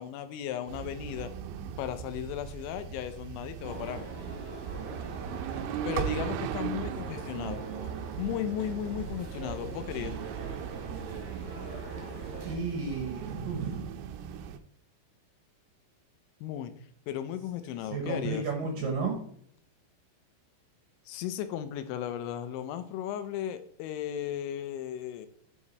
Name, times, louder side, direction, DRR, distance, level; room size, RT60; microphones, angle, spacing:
voice 1, 0.0-1.3 1.8-4.1 5.9-7.6 8.2-10.2 16.4-16.7 17.1-18.4 21.1-25.3, left 10 dB, 90° left, 10 dB, 3.1 m, -35 dB
sound 1, 0.7-14.6, right 8 dB, 85° right, 3.0 m, -38 dB
sound 2, 3.6-12.6, right 2 dB, 50° right, 1.9 m, -44 dB
voice 2, 12.4-14.0 17.9-19.2, right 4 dB, 70° right, 2 dB, 2.2 m, -33 dB
9.2 x 4.9 x 4.1 m, 0.66 s
omnidirectional pair, 5.2 m